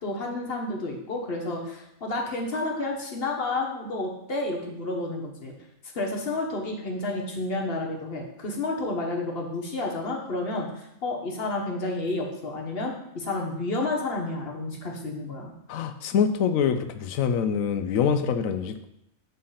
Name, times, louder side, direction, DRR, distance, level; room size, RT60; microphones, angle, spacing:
voice 1, 0.0-5.5 5.9-15.5, left 2 dB, 45° left, 0 dB, 1.2 m, -30 dB
voice 2, 15.7-18.8, left 7 dB, 70° left, 9 dB, 0.9 m, -25 dB
6.9 x 3.2 x 5.6 m, 0.82 s
omnidirectional pair, 1.5 m